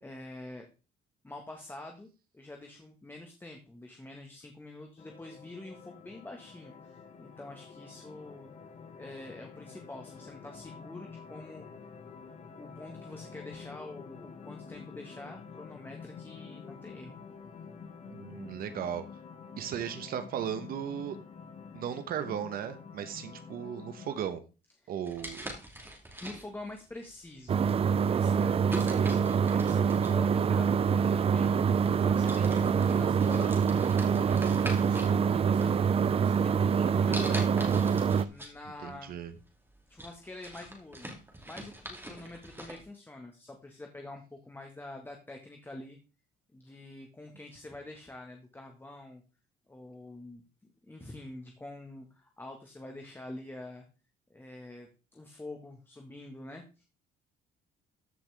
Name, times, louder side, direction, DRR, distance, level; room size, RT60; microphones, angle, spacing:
voice 1, 0.0-0.7 1.2-2.1 2.3-8.5 9.0-11.7 12.6-17.2 24.8-24.9 26.2-27.7 27.9-31.7 32.0-33.6 34.6-35.9 36.2-37.6 38.2-39.1 39.9-41.1 41.5-46.0 46.5-49.2 49.7-50.4 50.9-53.8 54.3-56.9, left 2 dB, 10° left, 3 dB, 1.6 m, -46 dB
sound 1, 5.0-24.2, left 6 dB, 40° left, 1.6 m, -48 dB
voice 2, 18.1-19.0 19.6-21.2 21.7-24.4 24.9-25.5 38.8-39.3, right 9 dB, 60° right, 10 dB, 1.1 m, -36 dB
sound 2, 25.0-26.7 27.4-27.7 28.7-30.3 31.3-31.4 31.9-32.0 32.3-35.1 35.5-36.2 37.1-38.6 38.9-39.0 39.5-42.8, right 1 dB, 15° right, 2.6 m, -42 dB
sound 3, 27.5-38.3, right 6 dB, 35° right, 0.5 m, -25 dB
14.0 x 5.8 x 3.5 m, 0.32 s
cardioid pair, 110°, 17 cm